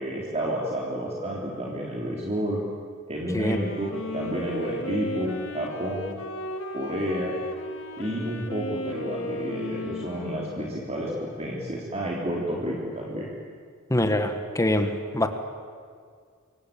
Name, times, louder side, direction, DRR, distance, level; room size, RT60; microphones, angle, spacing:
voice 1, 0.0-2.6 3.1-6.2 6.7-7.4 8.0-13.3, equal, 30° right, -3 dB, 3.6 m, -30 dB
Wind instrument woodwind instrument, 3.3-11.0, left 1 dB, 65° left, 2.4 m, -35 dB
voice 2, 13.9-15.3, left 1 dB, 15° left, 7 dB, 1.7 m, -24 dB
27.5 x 23.0 x 8.8 m, 2.1 s
head